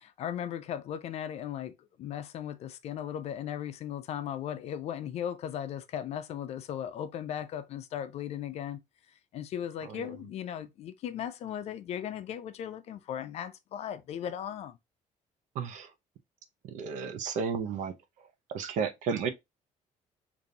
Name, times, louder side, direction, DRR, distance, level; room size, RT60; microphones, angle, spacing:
voice 1, 0.0-8.8 9.3-14.8, left 9 dB, 55° left, 0.5 m, -37 dB
voice 2, 15.5-15.9 16.6-17.9 18.5-19.3, right 6 dB, 75° right, 0.8 m, -32 dB
5.2 x 2.6 x 2.7 m
cardioid pair, 170°, 13 cm